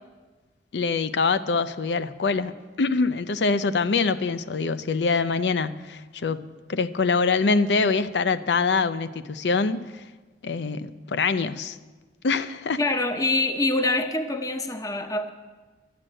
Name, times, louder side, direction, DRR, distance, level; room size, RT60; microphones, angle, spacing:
voice 1, 0.7-2.5 2.8-9.8 10.4-11.8 12.2-12.8, left 4 dB, 75° left, 0.5 m, -24 dB
voice 2, 12.8-15.3, left 2 dB, 20° left, 0.7 m, -25 dB
11.5 x 7.6 x 9.0 m
head